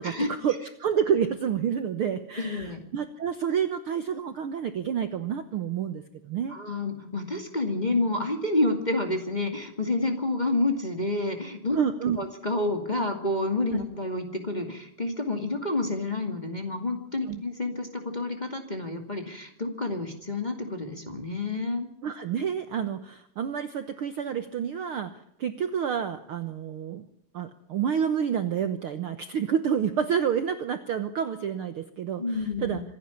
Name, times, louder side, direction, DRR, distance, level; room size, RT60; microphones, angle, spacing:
voice 1, 0.0-6.5 11.7-12.2 13.7-13.8 17.3-17.4 22.0-25.1 25.4-27.0 27.3-32.8, right 8 dB, 75° right, 9 dB, 1.2 m, -29 dB
voice 2, 2.4-2.8 6.5-11.8 12.2-21.9 32.2-32.8, left 2 dB, 15° left, 4 dB, 1.9 m, -29 dB
26.0 x 11.0 x 9.7 m, 0.74 s
omnidirectional pair, 4.0 m